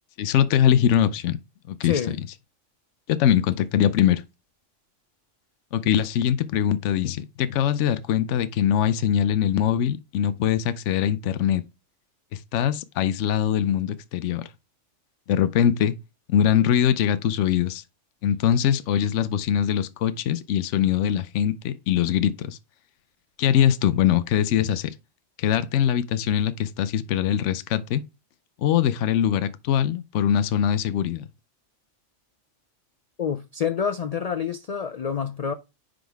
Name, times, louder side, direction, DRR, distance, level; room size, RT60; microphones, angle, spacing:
voice 1, 0.2-1.4 1.7-2.2 3.1-4.2 5.7-11.6 12.3-14.5 15.3-15.9 16.3-17.8 18.2-22.6 23.4-24.9 25.4-28.0 28.6-31.2, left 9 dB, 80° left, 0.9 m, -22 dB
voice 2, 1.8-2.2 33.2-35.5, left 7 dB, 60° left, 0.4 m, -27 dB
9.8 x 4.0 x 3.4 m
omnidirectional pair, 1.2 m